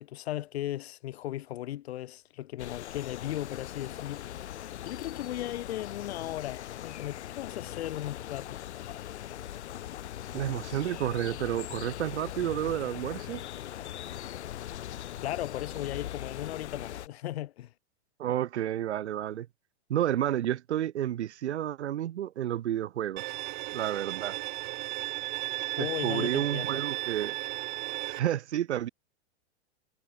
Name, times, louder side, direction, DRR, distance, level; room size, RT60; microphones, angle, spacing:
voice 1, 0.0-8.6 15.2-17.7 25.8-26.8, left 14 dB, 65° left, 2.5 m, -37 dB
sound 1, 2.6-17.1, left 12 dB, 80° left, 1.7 m, -40 dB
voice 2, 10.3-13.4 18.2-19.5 19.9-23.2 23.7-24.4 25.8-27.4 28.1-28.9, right 11 dB, 90° right, 1.8 m, -30 dB
Bowed string instrument, 23.2-28.2, right 21 dB, 45° right, 1.2 m, -35 dB
supercardioid pair, 155°, 33 cm